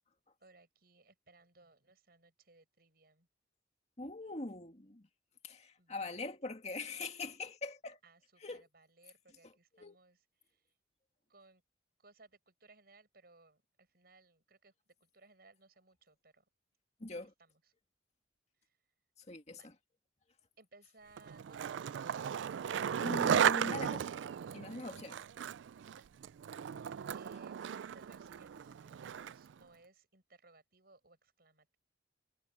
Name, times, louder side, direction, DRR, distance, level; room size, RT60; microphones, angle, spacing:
voice 1, 0.4-3.3 5.8-6.1 8.0-10.2 10.5-10.6 11.3-11.6 12.0-14.7 15.0-16.4 17.4-17.6 19.6-19.7 20.6-22.2 25.9-26.0 26.7-26.8 27.1-31.8, right 3 dB, 55° right, 7.2 m, -63 dB
voice 2, 4.0-5.1 5.4-8.0 8.4-8.6 9.4-10.0 17.0-17.3 19.3-19.7 22.8-24.1 24.5-25.2, left 2 dB, 35° left, 2.1 m, -43 dB
Skateboard, 21.2-29.5, right 8 dB, 75° right, 0.3 m, -35 dB
head